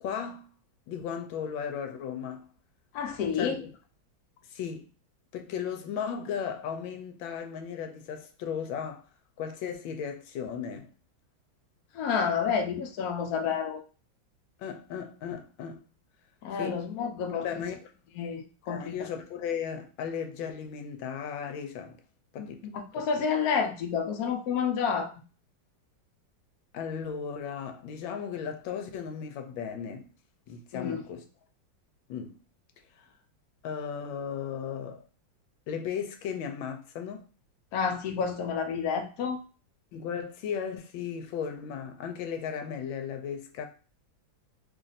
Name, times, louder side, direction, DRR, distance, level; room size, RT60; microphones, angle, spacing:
voice 1, 0.0-0.5 0.9-2.5 3.4-3.7 4.5-4.9 5.3-9.0 9.4-10.9 14.6-15.8 16.6-16.8 17.3-17.8 18.7-22.0 22.3-23.3 26.7-30.1 30.5-31.2 32.1-32.4 33.6-35.0 35.7-37.3 39.9-43.7, left 7 dB, 80° left, 1.4 m, -36 dB
voice 2, 2.9-3.6 11.9-13.8 16.4-17.6 18.1-19.1 22.7-25.1 30.7-31.0 37.7-39.4, left 6 dB, 65° left, 1.0 m, -29 dB
3.2 x 2.5 x 4.0 m
omnidirectional pair, 2.1 m